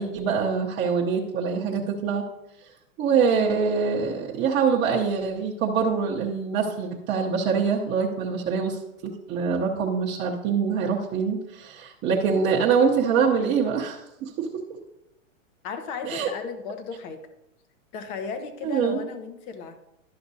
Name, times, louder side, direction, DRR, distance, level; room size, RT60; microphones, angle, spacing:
voice 1, 0.0-2.2 3.0-14.5 16.0-16.3 18.6-19.0, right 6 dB, 25° right, -4 dB, 0.9 m, -24 dB
voice 2, 15.6-17.2 17.9-19.8, left 5 dB, 35° left, 8 dB, 1.0 m, -35 dB
11.5 x 5.9 x 2.7 m, 0.87 s
hypercardioid pair, 130°, 41 cm